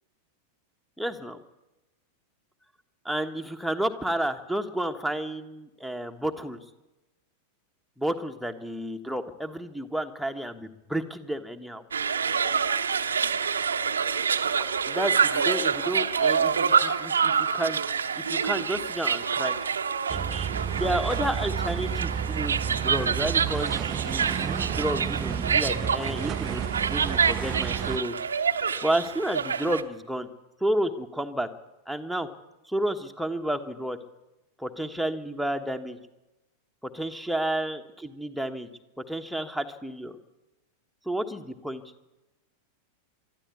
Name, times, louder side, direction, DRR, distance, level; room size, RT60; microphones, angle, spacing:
voice 1, 1.0-1.4 3.0-6.6 8.0-11.8 14.9-19.6 20.7-28.2 28.8-30.3 30.6-31.5 31.9-32.3 32.7-34.0 34.6-36.0 36.9-38.7 39.1-40.1 41.0-41.8, right 1 dB, ahead, 10 dB, 1.4 m, -31 dB
sound 1, 11.9-29.8, right 6 dB, 70° right, 0.9 m, -27 dB
sound 2, 20.1-28.0, right 8 dB, 30° right, 0.6 m, -31 dB
23.5 x 13.0 x 8.5 m, 1.0 s
figure-of-eight pair, 90°, 0 cm